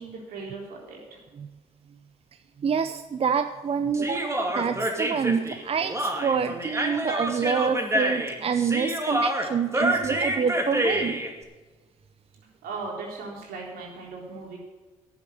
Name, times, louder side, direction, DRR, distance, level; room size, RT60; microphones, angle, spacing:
voice 1, 0.0-1.2 12.6-14.6, right 3 dB, 70° right, -2 dB, 3.9 m, -38 dB
voice 2, 2.6-11.2, right 6 dB, 40° right, 10 dB, 0.6 m, -27 dB
Human voice, 3.9-11.3, right 1 dB, 20° right, 2.4 m, -27 dB
10.5 x 7.2 x 9.7 m, 1.2 s
hypercardioid pair, 50°, 16 cm